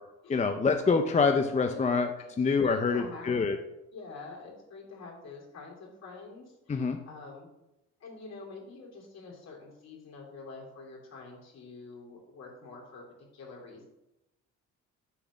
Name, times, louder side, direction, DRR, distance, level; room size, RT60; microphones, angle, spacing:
voice 1, 0.3-2.1 2.4-3.6 6.7-7.0, left 4 dB, 25° left, 6 dB, 0.5 m, -25 dB
voice 2, 2.6-3.5 3.9-7.5 8.0-13.0 13.3-13.8, left 3 dB, 60° left, -2 dB, 2.8 m, -46 dB
6.9 x 3.9 x 6.2 m, 0.92 s
cardioid pair, 90°, 30 cm